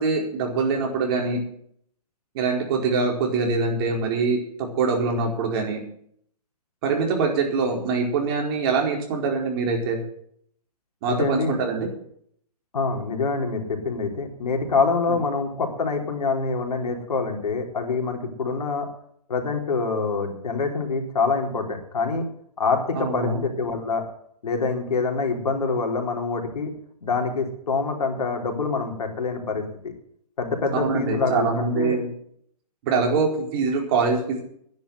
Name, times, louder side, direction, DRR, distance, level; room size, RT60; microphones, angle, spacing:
voice 1, 0.0-1.4 2.3-5.8 6.8-10.0 11.0-11.9 15.1-15.2 22.9-23.4 30.7-32.1 32.8-34.4, right 4 dB, 40° right, 1 dB, 4.6 m, -24 dB
voice 2, 11.1-11.6 12.7-18.9 19.3-22.2 22.6-24.0 24.4-26.7 27.0-29.9 30.4-32.0, left 4 dB, 75° left, 4 dB, 3.9 m, -25 dB
10.5 x 10.5 x 7.8 m, 0.66 s
hypercardioid pair, 145°, 20 cm